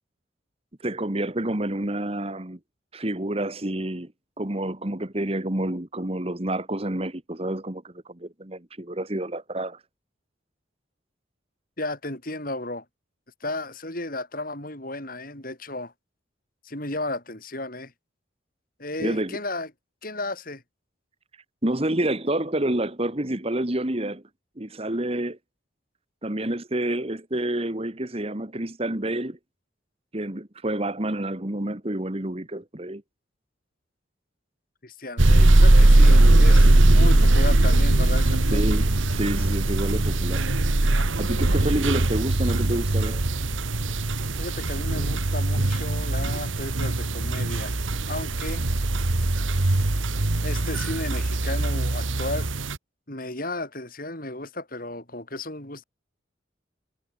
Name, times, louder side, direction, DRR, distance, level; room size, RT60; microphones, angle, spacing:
voice 1, 0.8-2.6 2.9-4.1 4.4-9.8 19.0-19.4 21.6-24.2 24.6-25.4 26.2-29.4 30.1-33.0 38.5-40.4 41.2-43.2, right 1 dB, 30° right, 1.6 m, -28 dB
voice 2, 11.8-12.8 13.4-15.9 16.6-17.9 18.8-19.7 20.0-20.6 34.8-38.6 44.4-47.8 48.1-48.6 50.4-52.5 53.1-55.8, left 2 dB, 45° left, 7.0 m, -34 dB
sound 1, 35.2-52.8, right 2 dB, 80° right, 1.5 m, -20 dB
head